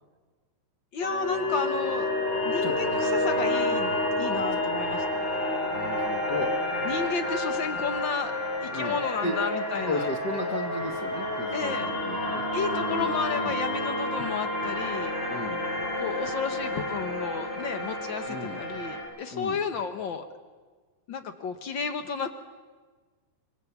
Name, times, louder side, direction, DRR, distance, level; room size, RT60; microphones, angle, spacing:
voice 1, 0.9-2.1 2.4-5.0 6.8-8.3 8.6-10.1 11.5-11.9 12.5-15.1 16.0-20.2 21.1-22.3, left 5 dB, 90° left, 8 dB, 1.0 m, -32 dB
sound 1, 1.0-19.0, left 1 dB, 30° left, 8.6 m, -29 dB
voice 2, 4.3-4.6 5.7-6.5 8.7-9.4 9.9-12.4 12.7-13.6 15.3-15.6 18.3-18.6 19.3-19.6, left 2 dB, 50° left, 3 dB, 1.2 m, -35 dB
26.5 x 22.5 x 7.1 m, 1.4 s
omnidirectional pair, 3.7 m